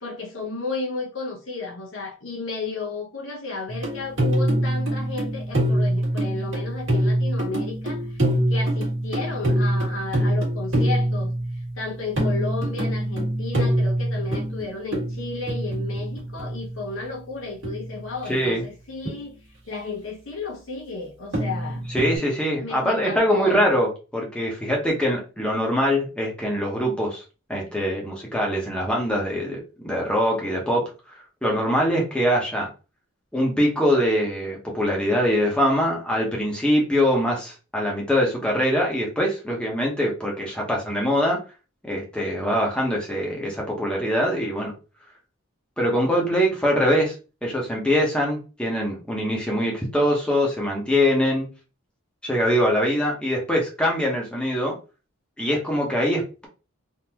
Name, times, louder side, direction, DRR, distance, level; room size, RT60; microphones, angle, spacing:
voice 1, 0.0-11.3 11.8-19.4 19.7-21.9 22.6-23.6, left 3 dB, 65° left, 1.0 m, -33 dB
sound 1, 3.7-17.0 17.6-18.2 19.1-19.2 21.3-22.2, right 1 dB, 60° right, 1.6 m, -24 dB
voice 2, 18.3-18.6 21.9-27.2 27.5-29.6 29.8-31.2 31.4-32.7 33.3-41.4 41.8-44.7 45.8-47.1 47.4-51.5 52.2-54.7 55.4-56.5, equal, 5° left, 1.0 m, -23 dB
3.7 x 2.7 x 2.9 m
head